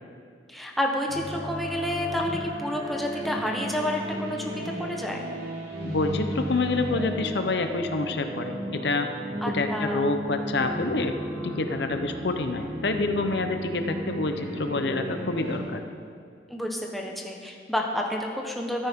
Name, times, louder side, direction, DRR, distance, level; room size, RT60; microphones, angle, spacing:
voice 1, 0.5-5.2 9.4-10.1 16.5-18.9, left 1 dB, ahead, 0 dB, 1.1 m, -30 dB
sound 1, 1.1-15.6, right 1 dB, 65° right, 3.3 m, -34 dB
voice 2, 5.8-11.2 11.4-15.8, left 3 dB, 70° left, 6 dB, 0.8 m, -27 dB
13.5 x 13.5 x 3.7 m, 2.2 s
head